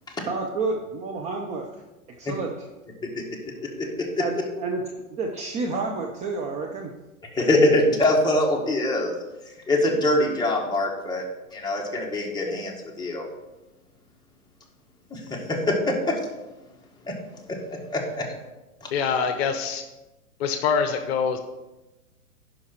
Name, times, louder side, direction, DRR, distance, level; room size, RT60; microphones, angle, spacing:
voice 1, 0.2-1.7 2.2-2.7 4.2-4.8 5.1-6.9, right 3 dB, 15° right, 1 dB, 0.6 m, -29 dB
voice 2, 7.3-9.1 9.7-11.2 11.5-13.2 15.1-16.1 17.5-17.6 17.9-18.2 18.8-18.9, left 1 dB, 10° left, -2 dB, 1.7 m, -23 dB
voice 3, 18.9-19.8 20.4-21.4, left 6 dB, 45° left, 7 dB, 1.0 m, -24 dB
11.0 x 5.3 x 4.5 m, 1.0 s
hypercardioid pair, 115°, 44 cm